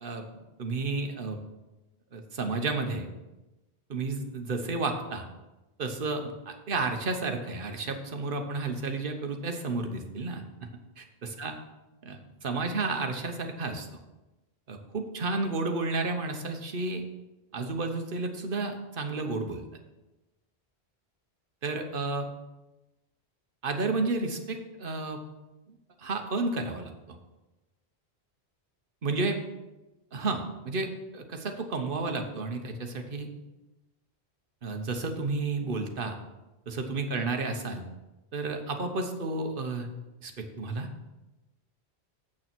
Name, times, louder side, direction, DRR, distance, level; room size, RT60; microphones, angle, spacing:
voice 1, 0.6-1.4 2.1-3.1 3.9-5.2 5.8-10.4 11.0-11.5 12.0-13.9 14.7-17.0 17.5-19.6 21.6-22.3 23.6-25.2 25.7-27.2 29.0-29.4 30.1-33.3 34.6-36.1 36.7-37.8 38.3-39.9 40.2-40.9, right 3 dB, 55° right, 5 dB, 1.2 m, -32 dB
7.6 x 6.7 x 6.1 m, 1.0 s
omnidirectional pair, 1.1 m